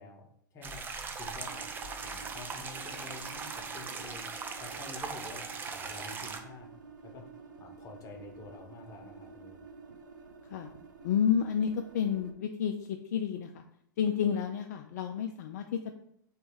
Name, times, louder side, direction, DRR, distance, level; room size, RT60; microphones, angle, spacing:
voice 1, 0.0-1.7 2.0-6.7 7.0-7.3 7.6-9.6, left 3 dB, 30° left, 2 dB, 1.0 m, -48 dB
sound 1, 0.6-6.4, right 5 dB, 20° right, 0.4 m, -39 dB
sound 2, 1.5-12.3, right 4 dB, 70° right, 0.6 m, -51 dB
voice 2, 11.0-13.6 14.0-15.9, left 8 dB, 55° left, 5 dB, 0.4 m, -30 dB
3.4 x 3.2 x 4.6 m, 0.72 s
figure-of-eight pair, 95°, 11 cm